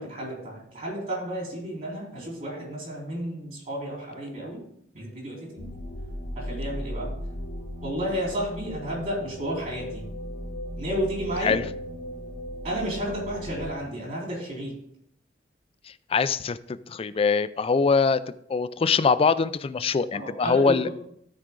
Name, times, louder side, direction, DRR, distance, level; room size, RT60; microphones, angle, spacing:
voice 1, 0.0-4.6 4.9-5.7 6.4-7.1 7.8-10.1 10.8-11.6 12.6-14.7 20.1-20.9, right 1 dB, 45° right, -2 dB, 3.8 m, -32 dB
sound 1, 5.6-13.7, equal, 65° left, 1.1 m, -36 dB
voice 2, 15.9-18.2 18.5-20.9, left 5 dB, 35° left, 14 dB, 0.4 m, -23 dB
13.0 x 5.0 x 3.7 m, 0.70 s
head